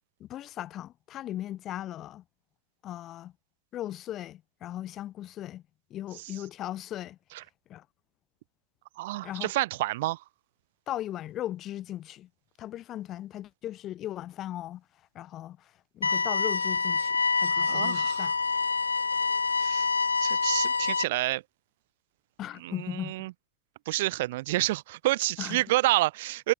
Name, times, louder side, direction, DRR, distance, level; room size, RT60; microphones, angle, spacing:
voice 1, 0.2-2.2 2.8-3.3 3.7-5.6 5.9-7.2 7.7-7.9 9.2-9.5 10.9-12.3 12.6-14.8 15.1-18.3 22.4-23.1 25.4-25.6, left 13 dB, 30° left, 5.5 m, -38 dB
voice 2, 9.0-10.2 17.5-18.3 19.6-19.9 20.2-21.4 22.6-23.3 23.9-26.5, right 18 dB, 50° right, 3.5 m, -29 dB
sound 1, 16.0-21.0, left 4 dB, 75° left, 2.3 m, -26 dB
figure-of-eight pair, 90°, 0 cm